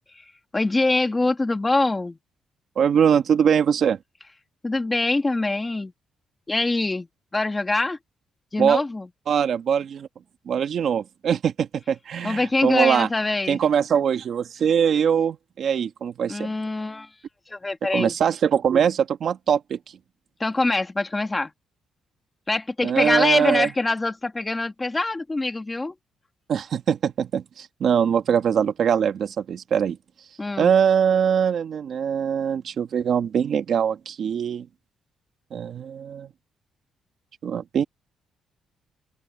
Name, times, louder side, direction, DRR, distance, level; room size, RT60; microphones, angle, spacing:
voice 1, 0.5-2.2 4.6-5.9 6.5-7.1 7.3-8.0 8.5-9.1 12.2-13.6 16.3-17.1 17.5-18.1 20.4-21.5 22.5-25.9 30.4-30.7, left 2 dB, 15° left, 2.0 m, -24 dB
voice 2, 2.8-4.0 8.6-8.8 9.3-10.1 10.5-13.1 13.5-16.5 17.9-19.8 22.8-23.7 26.5-30.0 30.6-34.7 35.5-36.3 37.4-37.8, right 8 dB, 55° right, 1.4 m, -22 dB
open air
cardioid pair, 155°, 0 cm